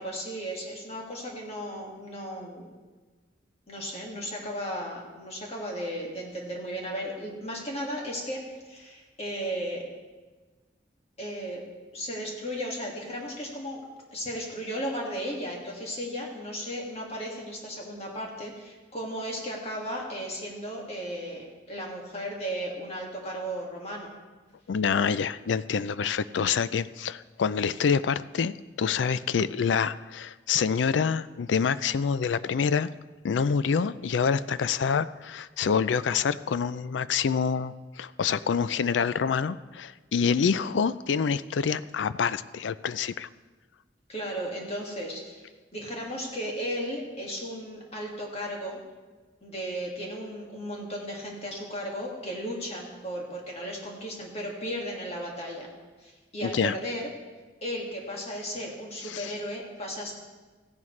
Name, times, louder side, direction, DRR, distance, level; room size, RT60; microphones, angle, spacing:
voice 1, 0.0-2.7 3.7-8.4 8.7-9.8 11.2-11.6 11.9-13.8 14.1-24.1 40.3-40.7 44.1-45.4 45.7-48.8 49.4-55.7 56.0-57.1 57.6-60.1, equal, 35° left, -1 dB, 2.0 m, -35 dB
voice 2, 24.7-32.9 33.2-43.3 56.4-56.7 59.0-59.3, left 6 dB, 85° left, 15 dB, 0.4 m, -27 dB
15.5 x 11.0 x 3.2 m, 1.3 s
head